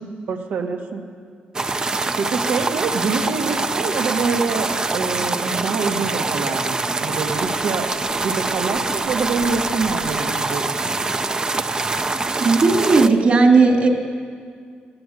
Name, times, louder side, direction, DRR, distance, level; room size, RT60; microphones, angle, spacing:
voice 1, 0.3-1.0 2.2-7.9 8.2-10.9, right 4 dB, 85° right, 2 dB, 2.3 m, -25 dB
sound 1, 1.5-13.1, right 3 dB, 25° right, 0.6 m, -24 dB
voice 2, 12.4-13.9, right 3 dB, 45° right, 2 dB, 2.6 m, -15 dB
19.0 x 17.0 x 8.0 m, 2.1 s
wide cardioid pair, 160°, 3 cm